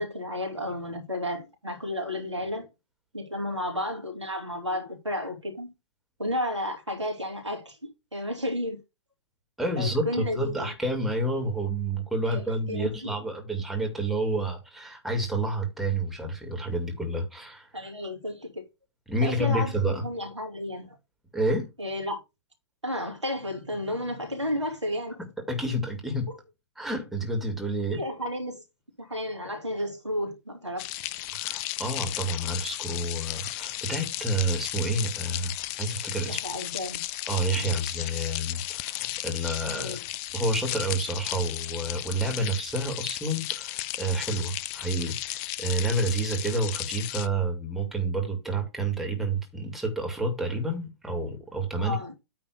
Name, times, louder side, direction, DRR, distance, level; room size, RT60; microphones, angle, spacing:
voice 1, 0.0-2.7 3.1-5.7 6.2-7.8 8.1-8.8 9.8-10.7 12.3-12.4 12.7-12.9 17.7-18.6 19.2-19.7 20.0-21.0 21.8-22.2 22.8-25.2 26.3-26.4 27.9-28.6 29.0-30.9 36.3-37.0 39.8-40.0 51.8-52.1, left 1 dB, 85° right, 3.0 m, -32 dB
voice 2, 9.6-17.7 19.1-20.0 21.3-21.7 25.4-26.3 26.8-28.0 31.3-35.5 35.8-36.4 37.3-40.0 40.3-52.0, right 1 dB, ahead, 2.3 m, -29 dB
sound 1, 30.8-47.3, left 16 dB, 30° left, 0.5 m, -34 dB
9.3 x 3.5 x 6.5 m
figure-of-eight pair, 110°, 15 cm